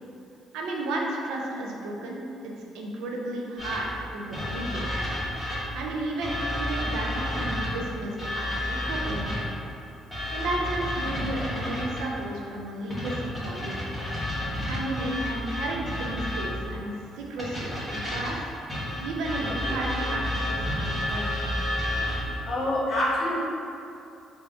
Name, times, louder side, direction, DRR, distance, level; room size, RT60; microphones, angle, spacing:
voice 1, 0.5-4.9 5.7-9.4 10.3-13.8 14.7-18.4 19.0-21.2, right 2 dB, 85° right, -1 dB, 0.5 m, -33 dB
sound 1, 3.6-5.8 6.2-9.6 10.1-12.2 12.9-16.7 17.4-22.3, left 1 dB, 5° left, 1.5 m, -30 dB
voice 2, 22.4-23.4, left 1 dB, 55° left, -5 dB, 1.0 m, -26 dB
3.4 x 2.6 x 3.5 m, 2.6 s
cardioid pair, 90°, 0 cm